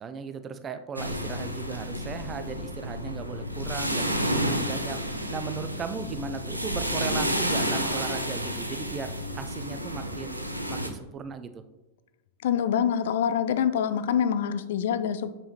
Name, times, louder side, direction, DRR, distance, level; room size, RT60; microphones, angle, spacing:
voice 1, 0.0-10.4 10.7-11.6, right 6 dB, 25° right, 10 dB, 0.5 m, -37 dB
sound 1, 1.0-10.9, equal, 85° right, 0.6 m, -30 dB
voice 2, 12.4-15.3, left 8 dB, 60° left, 12 dB, 0.4 m, -25 dB
6.9 x 5.5 x 2.9 m, 1.0 s
figure-of-eight pair, 90°, 0 cm